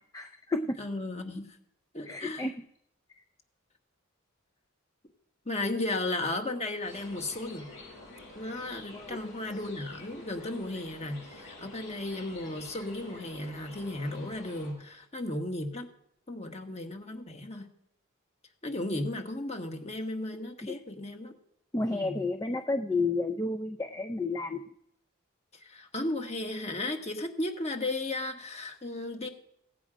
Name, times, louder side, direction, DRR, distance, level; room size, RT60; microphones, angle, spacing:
voice 1, 0.0-0.8 2.1-2.5 8.9-9.2 20.6-20.8 21.7-24.6, left 3 dB, 15° left, 7 dB, 0.4 m, -31 dB
voice 2, 0.8-1.6 1.9-2.5 5.4-7.7 8.3-15.9 16.3-17.7 18.6-21.3 21.9-22.2 25.5-29.3, left 2 dB, 30° left, 5 dB, 1.5 m, -35 dB
sound 1, 6.8-14.7, left 2 dB, 80° left, 6.7 m, -48 dB
16.5 x 8.3 x 5.0 m, 0.75 s
head